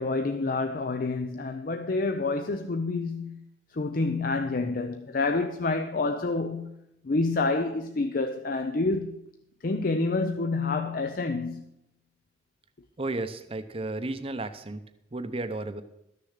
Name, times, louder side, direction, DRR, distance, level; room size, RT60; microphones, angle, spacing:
voice 1, 0.0-3.4 3.7-6.7 7.0-9.2 9.6-11.7, left 3 dB, 50° left, 0.6 m, -28 dB
voice 2, 13.0-14.8 15.1-15.8, right 2 dB, 30° right, 0.7 m, -33 dB
13.0 x 6.7 x 6.5 m
head